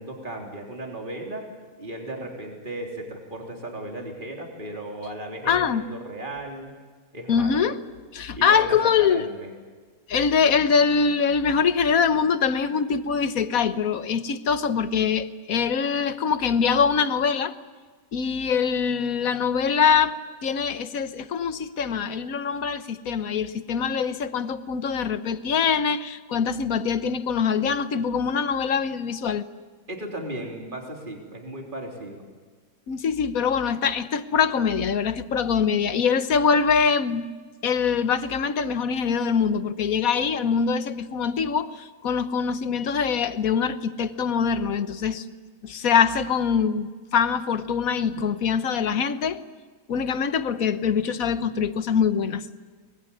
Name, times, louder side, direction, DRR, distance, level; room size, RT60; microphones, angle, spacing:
voice 1, 0.0-1.5 1.8-6.7 7.1-7.6 8.4-9.5 29.9-32.2, right 1 dB, 35° right, 3.7 m, -36 dB
voice 2, 5.5-5.8 7.3-7.8 8.1-9.3 10.1-17.5 18.1-29.4 32.9-37.3 37.6-45.2 45.6-49.4 49.9-52.4, left 6 dB, 85° left, 1.5 m, -23 dB
24.0 x 20.5 x 9.8 m
omnidirectional pair, 1.4 m